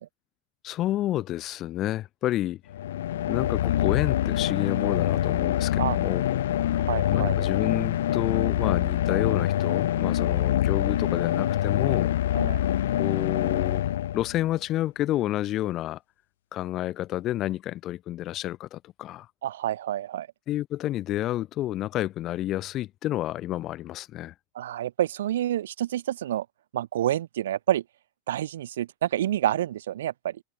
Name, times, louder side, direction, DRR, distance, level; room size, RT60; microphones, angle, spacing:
voice 1, 0.6-2.6 3.3-6.8 7.1-12.2 13.0-13.8 14.1-16.0 16.5-19.3 20.5-24.3, left 14 dB, 35° left, 3.7 m, -29 dB
sound 1, 2.7-14.6, left 12 dB, 60° left, 0.6 m, -25 dB
voice 2, 6.9-7.4 12.3-12.6 19.4-20.3 24.6-26.5 26.7-27.8 28.3-30.4, right 12 dB, 60° right, 1.9 m, -28 dB
figure-of-eight pair, 90°, 0 cm